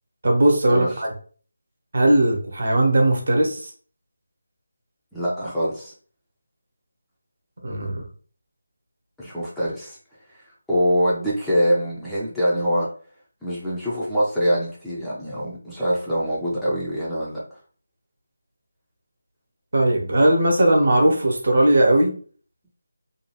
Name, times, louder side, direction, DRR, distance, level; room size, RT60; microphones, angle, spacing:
voice 1, 0.2-1.1 1.9-3.7 7.6-8.0 19.7-22.1, right 1 dB, 55° right, 1 dB, 0.8 m, -18 dB
voice 2, 5.1-5.9 9.2-10.0 10.3-12.9 13.4-17.6, equal, 5° left, -10 dB, 0.5 m, -24 dB
2.7 x 2.3 x 2.9 m, 0.42 s
figure-of-eight pair, 160°, 0 cm